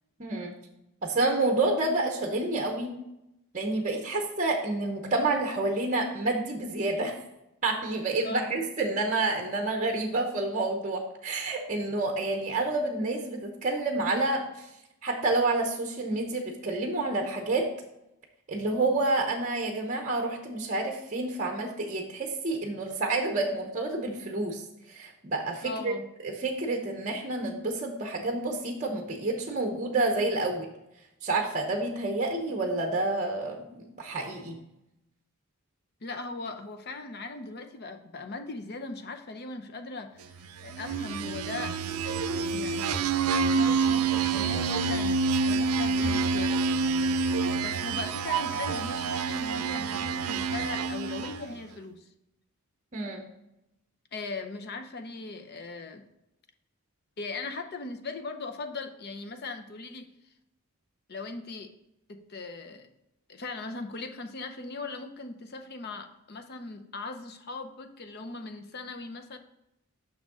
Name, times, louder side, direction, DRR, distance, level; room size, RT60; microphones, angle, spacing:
voice 1, 0.2-0.5 1.0-3.0 3.5-7.2 7.6-14.7 15.0-17.7 18.5-25.9 26.2-30.7 31.2-34.6 52.9-53.2, right 2 dB, 35° right, 2 dB, 0.8 m, -29 dB
voice 2, 8.2-8.6 25.6-26.1 36.0-41.8 42.5-43.2 43.5-46.6 47.5-52.1 54.1-56.0 57.2-60.1 61.1-61.7 62.1-62.9 63.3-69.4, left 3 dB, 45° left, 7 dB, 0.7 m, -39 dB
sound 1, 40.6-51.5, right 4 dB, 85° right, 0.5 m, -27 dB
6.4 x 6.2 x 3.6 m, 0.87 s
head